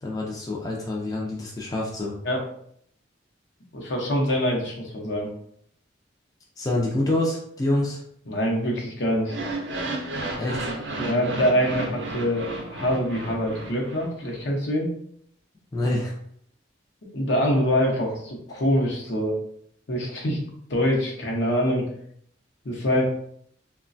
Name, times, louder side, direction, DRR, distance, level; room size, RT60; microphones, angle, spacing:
voice 1, 0.0-2.1 6.6-8.0 10.4-10.7 15.7-16.1, left 1 dB, 20° left, -2 dB, 0.4 m, -26 dB
voice 2, 3.7-5.3 8.3-9.4 11.0-14.9 17.1-19.3 19.9-20.4 20.7-21.9 22.6-23.1, equal, 75° left, -1 dB, 0.7 m, -24 dB
sound 1, 9.2-14.4, right 2 dB, 70° right, 0.5 m, -33 dB
3.0 x 2.2 x 2.5 m, 0.66 s
head